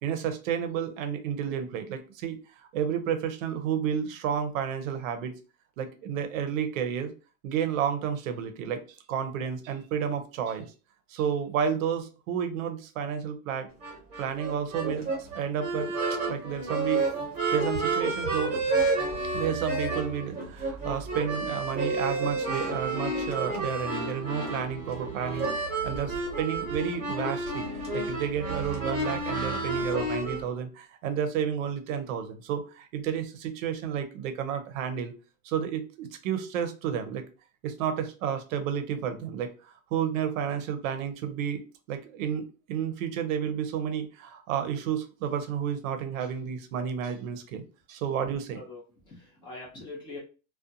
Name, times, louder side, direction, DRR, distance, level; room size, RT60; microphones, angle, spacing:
voice 1, 0.0-2.4 2.7-5.3 5.8-7.1 7.4-8.8 9.1-10.7 11.1-13.7 14.2-15.1 15.3-15.9 16.3-17.1 17.5-18.5 19.3-27.7 27.9-35.1 35.4-37.2 37.6-39.5 39.9-41.6 41.9-47.6 47.9-48.6, right 8 dB, 65° right, 8 dB, 0.7 m, -31 dB
sound 1, 13.8-30.4, right 3 dB, 15° right, 0.9 m, -30 dB
voice 2, 48.5-50.2, left 2 dB, 10° left, -3 dB, 0.5 m, -43 dB
2.4 x 2.2 x 2.6 m, 0.34 s
supercardioid pair, 160°, 43 cm